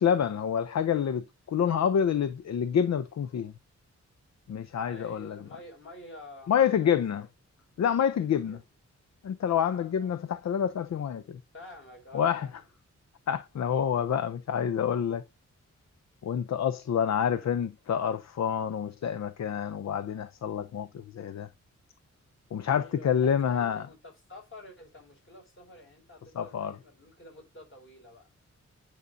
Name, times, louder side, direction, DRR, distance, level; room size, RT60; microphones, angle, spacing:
voice 1, 0.0-3.5 4.5-5.4 6.5-7.2 7.8-8.6 9.2-11.4 12.1-12.5 13.3-15.2 16.2-21.5 22.5-23.8 26.4-26.8, left 8 dB, 65° left, 0.6 m, -27 dB
voice 2, 4.8-7.0 8.1-8.6 9.7-10.2 11.5-12.6 17.0-17.5 22.7-28.3, left 1 dB, 45° left, 5.2 m, -49 dB
9.4 x 5.2 x 2.6 m
wide cardioid pair, 145°, 30 cm